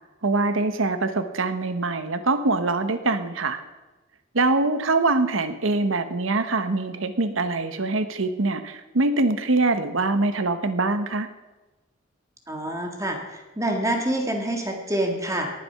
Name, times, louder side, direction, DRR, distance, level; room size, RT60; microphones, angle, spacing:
voice 1, 0.2-3.6 4.3-11.3, right 3 dB, 80° right, 10 dB, 1.0 m, -23 dB
voice 2, 12.5-15.5, right 1 dB, 15° right, 3 dB, 1.7 m, -27 dB
18.5 x 7.6 x 5.7 m, 1.1 s
head